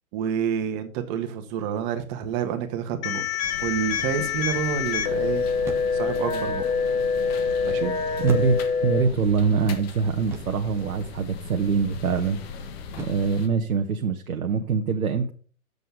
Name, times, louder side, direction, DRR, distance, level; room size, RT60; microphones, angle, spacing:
voice 1, 0.1-3.2 3.6-5.5 5.9-6.7 7.6-7.9, right 8 dB, 30° right, 7 dB, 1.3 m, -28 dB
sound 1, 3.0-9.0, left 5 dB, 20° left, 0.9 m, -26 dB
sound 2, 3.2-3.5 5.6-6.2 8.3-9.0 10.3-10.8 13.0-13.4, right 3 dB, 5° right, 0.5 m, -38 dB
sound 3, 3.4-13.5, left 4 dB, 45° left, 1.5 m, -39 dB
voice 2, 8.2-8.6 8.8-12.4 13.0-15.3, right 5 dB, 75° right, 5 dB, 1.1 m, -24 dB
7.9 x 6.7 x 5.0 m, 0.40 s
hypercardioid pair, 130°, 43 cm